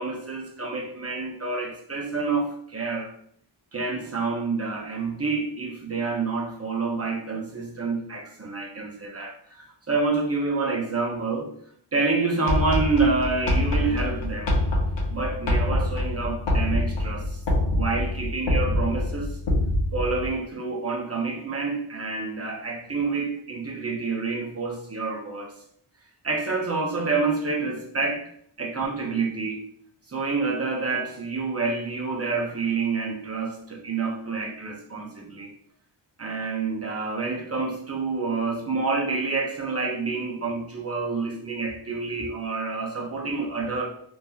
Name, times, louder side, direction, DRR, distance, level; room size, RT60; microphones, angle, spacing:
voice 1, 0.0-3.1 3.7-11.5 11.9-14.6 15.1-17.4 17.7-19.4 19.9-25.6 26.2-28.3 28.6-29.6 30.1-35.5 36.2-43.8, right 4 dB, 30° right, 0.5 m, -28 dB
sound 1, 12.5-20.3, left 1 dB, 60° left, 0.6 m, -25 dB
2.8 x 2.3 x 2.3 m
wide cardioid pair, 85°, 50 cm